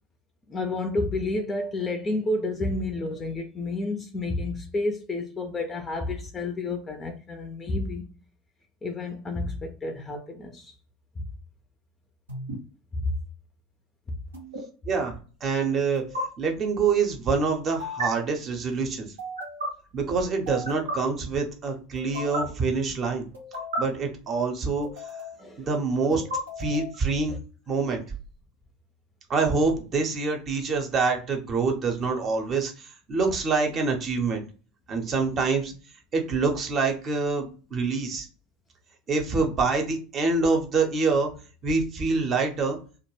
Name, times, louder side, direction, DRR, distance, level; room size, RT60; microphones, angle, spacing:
voice 1, 0.5-8.1 8.8-10.7 11.2-11.3 12.9-13.2 14.1-14.2 25.4-25.7 27.3-27.4, left 2 dB, 20° left, 0.4 m, -30 dB
sound 1, 12.3-12.6 14.3-14.6 15.9-16.2 17.8-18.1 19.2-19.7 20.5-21.0 22.0-22.4 23.3-23.8 24.8-25.4 26.1-27.0, equal, 75° right, 0.7 m, -33 dB
voice 2, 14.9-16.0 16.4-19.1 19.9-23.2 23.8-24.9 25.6-26.2 26.6-27.4 27.7-28.0 29.3-34.4 34.9-35.7 36.1-38.3 39.1-41.3 41.6-42.8, right 4 dB, 35° right, 0.7 m, -26 dB
2.3 x 2.1 x 3.1 m
figure-of-eight pair, 75°, 0 cm